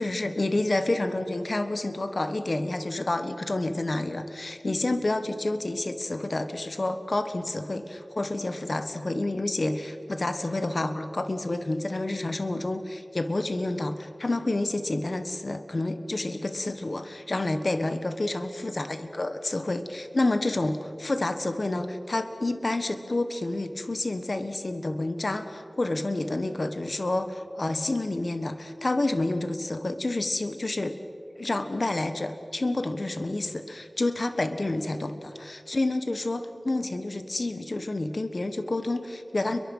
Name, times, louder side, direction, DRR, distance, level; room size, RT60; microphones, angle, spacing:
voice 1, 0.0-30.9 31.4-39.6, left 2 dB, 55° left, 9 dB, 1.5 m, -29 dB
30.0 x 22.5 x 5.7 m, 2.5 s
wide cardioid pair, 55°, 0 cm